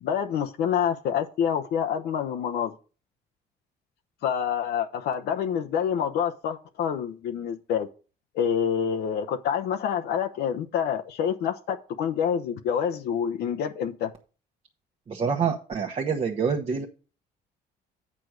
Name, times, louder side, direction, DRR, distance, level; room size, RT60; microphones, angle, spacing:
voice 1, 0.0-2.7 4.2-7.9 8.3-14.1, left 8 dB, 75° left, 0.8 m, -27 dB
voice 2, 15.1-16.9, right 6 dB, 35° right, 1.1 m, -26 dB
8.6 x 4.6 x 6.3 m
cardioid pair, 110°, 17 cm